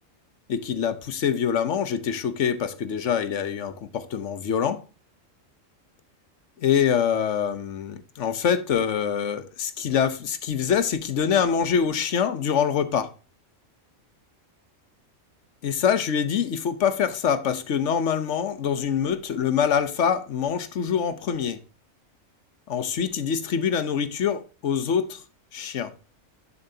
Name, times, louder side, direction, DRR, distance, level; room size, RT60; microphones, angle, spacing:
voice 1, 0.5-4.8 6.6-13.1 15.6-21.6 22.7-25.2 25.5-25.9, left 7 dB, 65° left, 1.2 m, -25 dB
10.5 x 6.9 x 2.8 m
omnidirectional pair, 1.4 m